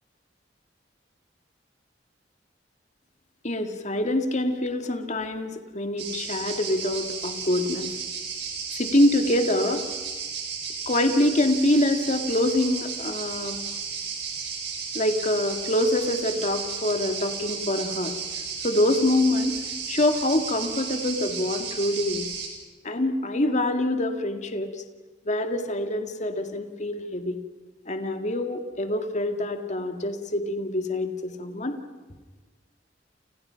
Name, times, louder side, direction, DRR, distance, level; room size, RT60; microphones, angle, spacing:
voice 1, 3.4-7.9 8.7-9.8 10.9-13.6 14.9-18.1 18.6-19.6 19.9-22.3 22.8-24.8 25.3-27.4 27.9-31.8, left 1 dB, 40° left, 6 dB, 2.1 m, -25 dB
sound 1, 6.0-22.5, right 6 dB, 70° right, 6.2 m, -34 dB
30.0 x 29.5 x 5.8 m, 1.3 s
head